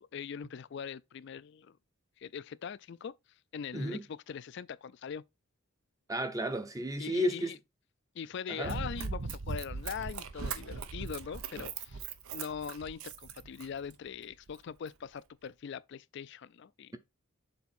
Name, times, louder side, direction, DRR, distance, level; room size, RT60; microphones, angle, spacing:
voice 1, 0.1-1.8 2.2-3.1 3.5-5.2 7.0-7.6 8.1-12.0 12.3-17.0, left 7 dB, 55° left, 0.3 m, -41 dB
voice 2, 6.1-7.5 8.5-8.7, equal, 15° right, 0.6 m, -32 dB
Run, 8.6-13.9 14.5-14.6, right 5 dB, 90° right, 0.7 m, -39 dB
7.0 x 4.0 x 4.2 m
head